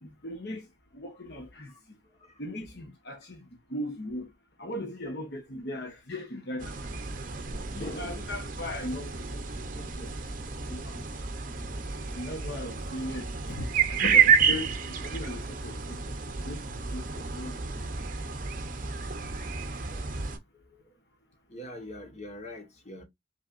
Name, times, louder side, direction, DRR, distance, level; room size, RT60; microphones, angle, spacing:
voice 1, 0.0-0.7 0.9-1.7 2.4-4.3 4.6-7.3 7.7-9.4 9.7-10.2 10.7-11.0 12.1-17.0 17.3-17.9, left 1 dB, 60° left, 1.0 m, -38 dB
sound 1, 6.6-20.4, right 6 dB, 45° right, 0.8 m, -30 dB
voice 2, 7.8-8.2 17.1-17.2 19.9-20.0 20.7-20.8 21.5-23.0, left 1 dB, 35° left, 1.4 m, -42 dB
5.7 x 3.3 x 2.5 m
head